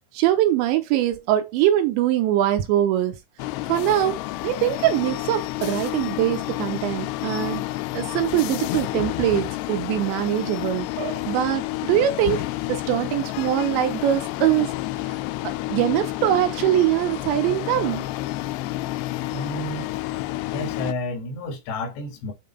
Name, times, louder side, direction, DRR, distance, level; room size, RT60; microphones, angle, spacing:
voice 1, 0.1-3.2 3.7-7.6 7.9-14.7 15.7-18.1, right 12 dB, 80° right, 3.2 m, -22 dB
sound 1, 3.4-20.9, left 18 dB, 85° left, 2.4 m, -30 dB
voice 2, 19.3-19.9 20.5-22.3, left 1 dB, 70° left, 4.0 m, -30 dB
8.7 x 3.5 x 4.0 m
omnidirectional pair, 5.3 m